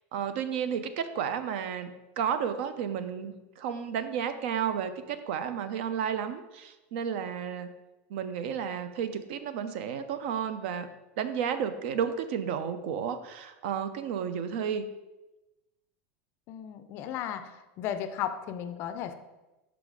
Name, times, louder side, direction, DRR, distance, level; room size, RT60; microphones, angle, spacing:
voice 1, 0.1-1.9 2.2-7.7 8.1-10.9 11.2-14.9, right 8 dB, 60° right, 11 dB, 0.5 m, -32 dB
voice 2, 16.5-19.1, left 9 dB, 35° left, 10 dB, 0.4 m, -35 dB
5.8 x 4.0 x 4.7 m, 1.0 s
supercardioid pair, 170°, 7 cm